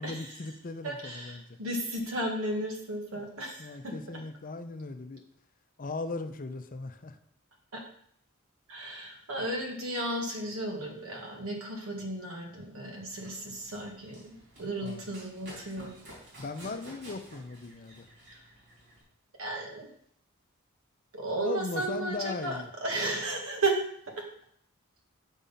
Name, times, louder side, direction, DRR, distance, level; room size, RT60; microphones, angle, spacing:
voice 1, 0.0-1.6 3.1-3.2 3.6-5.2 5.8-7.2 14.8-15.0 16.4-18.1 21.4-22.7 23.1-23.2, left 3 dB, 40° left, 9 dB, 0.6 m, -38 dB
voice 2, 0.8-3.9 7.7-7.8 8.7-15.9 18.3-18.4 19.4-19.9 21.1-23.8 24.2-24.3, right 2 dB, 85° right, 1 dB, 1.7 m, -34 dB
Run, 13.0-19.0, right 1 dB, 60° right, 3.3 m, -51 dB
6.3 x 5.4 x 5.6 m, 0.67 s
head